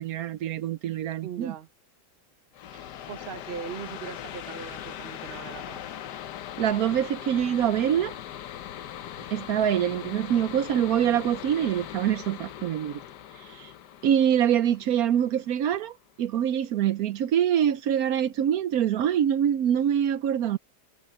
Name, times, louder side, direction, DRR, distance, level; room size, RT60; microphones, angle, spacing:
voice 1, 0.0-1.5 6.6-8.1 9.3-13.0 13.6-13.7 14.0-20.6, right 10 dB, 70° right, 1.0 m, -25 dB
voice 2, 1.2-1.7 3.1-5.8, right 8 dB, 45° right, 0.9 m, -39 dB
sound 1, 2.5-15.9, left 11 dB, 75° left, 1.4 m, -40 dB
omnidirectional pair, 1.8 m